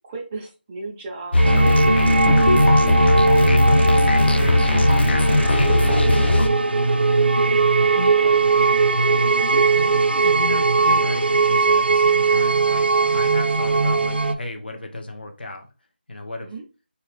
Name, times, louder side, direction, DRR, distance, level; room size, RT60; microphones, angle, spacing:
voice 1, 0.0-6.5 7.7-8.6 9.4-9.7 9.9-10.2 16.4-16.6, right 2 dB, 10° right, -2 dB, 0.4 m, -37 dB
sound 1, 1.3-6.5, left 2 dB, 80° left, 0.4 m, -18 dB
sound 2, 1.4-14.3, right 3 dB, 80° right, 0.4 m, -19 dB
voice 2, 10.2-15.7 16.1-16.5, left 1 dB, 65° left, 4 dB, 0.8 m, -33 dB
2.8 x 2.7 x 3.2 m, 0.33 s
figure-of-eight pair, 170°, 6 cm